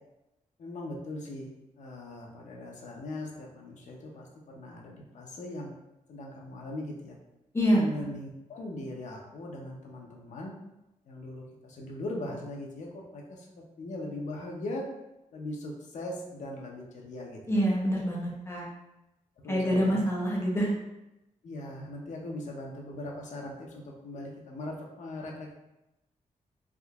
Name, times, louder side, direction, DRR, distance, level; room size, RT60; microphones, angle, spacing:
voice 1, 0.6-1.5 1.8-5.7 6.1-7.2 7.7-10.5 11.1-14.9 15.3-17.6 19.4-20.0 21.4-25.5, left 1 dB, 65° left, -1 dB, 0.6 m, -40 dB
voice 2, 17.5-18.6 19.5-20.7, equal, 20° left, -4 dB, 0.5 m, -26 dB
3.5 x 2.7 x 2.3 m, 0.93 s
wide cardioid pair, 180°, 14 cm